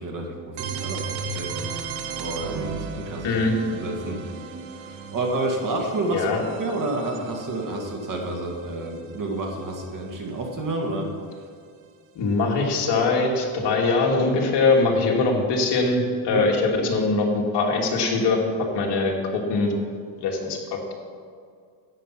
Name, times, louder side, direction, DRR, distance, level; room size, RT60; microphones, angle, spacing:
voice 1, 0.0-1.5 2.2-3.3 3.7-4.2 4.8-11.1 16.3-16.5, right 2 dB, 45° right, 1 dB, 2.1 m, -29 dB
sound 1, 0.6-10.3, right 5 dB, 85° right, 1.3 m, -36 dB
voice 2, 12.2-18.4 18.7-19.7 20.2-20.9, left 3 dB, 60° left, 0 dB, 2.5 m, -22 dB
12.5 x 9.0 x 5.9 m, 2.2 s
cardioid pair, 140°, 45 cm